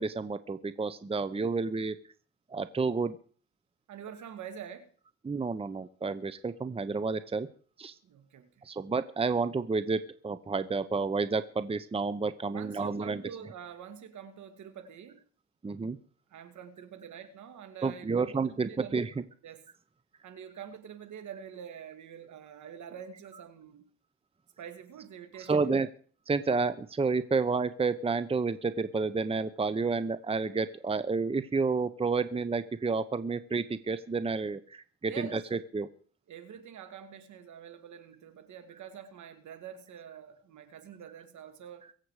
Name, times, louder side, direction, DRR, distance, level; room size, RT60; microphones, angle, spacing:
voice 1, 0.0-1.9 2.5-3.2 5.2-7.5 7.8-7.9 8.6-13.2 15.6-16.0 17.8-19.1 25.5-25.9 26.3-35.9, right 4 dB, 20° right, 0.8 m, -30 dB
voice 2, 3.9-4.9 8.0-8.7 12.5-15.2 16.3-19.1 19.4-19.6 20.2-23.9 24.6-25.6 35.0-35.4 36.3-41.9, right 8 dB, 70° right, 2.4 m, -46 dB
23.0 x 7.7 x 4.9 m
cardioid pair, 90°, 30 cm